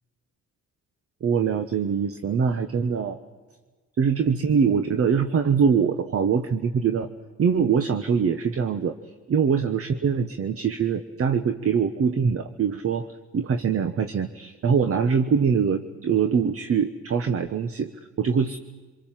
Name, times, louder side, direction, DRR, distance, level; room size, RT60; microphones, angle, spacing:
voice 1, 1.2-3.2 4.0-7.1 7.4-9.0 9.3-13.1 13.3-17.9 18.2-18.6, right 6 dB, 50° right, 9 dB, 1.3 m, -23 dB
26.0 x 22.5 x 7.5 m, 1.4 s
cardioid pair, 90°, 30 cm